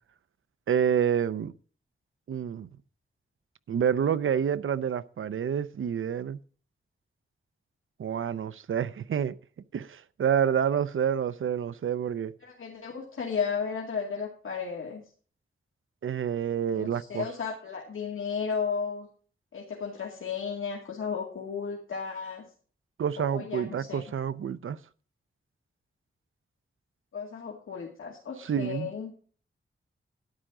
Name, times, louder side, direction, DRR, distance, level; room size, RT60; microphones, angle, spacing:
voice 1, 0.7-1.5 2.3-2.7 3.7-6.4 8.0-9.3 9.7-12.3 16.0-17.3 23.0-24.8 28.4-28.9, right 8 dB, 80° right, 0.6 m, -28 dB
voice 2, 12.4-15.0 16.7-19.1 19.5-22.4 23.2-24.0 27.1-29.1, left 6 dB, 80° left, 2.3 m, -34 dB
12.5 x 10.0 x 3.8 m
wide cardioid pair, 105°, 21 cm